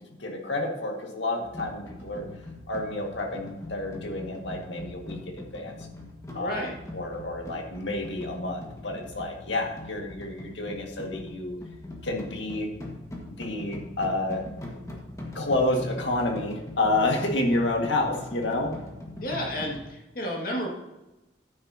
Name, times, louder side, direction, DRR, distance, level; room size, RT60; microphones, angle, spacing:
voice 1, 0.0-2.3 2.7-5.7 6.3-11.6 12.0-12.7 13.4-14.4 15.3-18.7, left 2 dB, 90° left, 2 dB, 1.9 m, -29 dB
sound 1, 1.4-19.9, left 1 dB, 15° left, 1.7 m, -42 dB
voice 2, 6.4-6.7 19.2-20.7, equal, 50° left, -1 dB, 2.1 m, -31 dB
11.5 x 9.9 x 2.9 m, 1.0 s
head